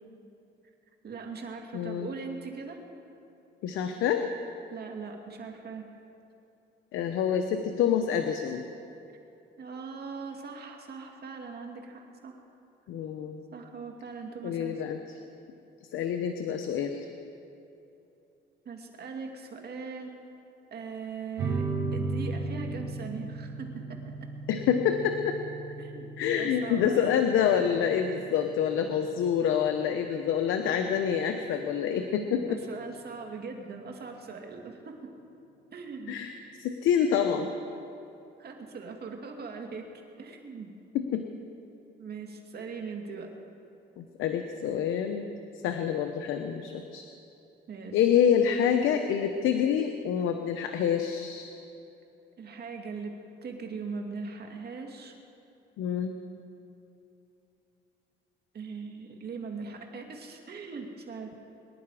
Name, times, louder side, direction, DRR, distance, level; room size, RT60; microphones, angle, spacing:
voice 1, 1.0-2.8 4.7-5.9 9.6-12.4 13.5-14.8 18.7-20.1 20.7-24.0 25.8-27.1 32.5-35.0 35.7-36.2 38.4-39.9 40.2-40.7 42.0-43.3 47.7-48.0 52.4-53.1 53.4-55.2 58.5-61.4, right 5 dB, 55° right, 3 dB, 2.3 m, -40 dB
voice 2, 1.7-2.1 3.6-4.3 6.9-8.6 12.9-13.4 14.4-15.0 15.9-17.1 24.5-25.4 26.2-32.6 36.1-37.5 41.1-41.2 44.0-45.3 45.6-47.1 47.9-51.5 55.8-56.1, left 8 dB, 90° left, 6 dB, 0.9 m, -27 dB
sound 1, 21.4-32.4, right 3 dB, 90° right, 3.2 m, -37 dB
24.0 x 11.0 x 4.9 m, 2.8 s
cardioid pair, 90°, 20 cm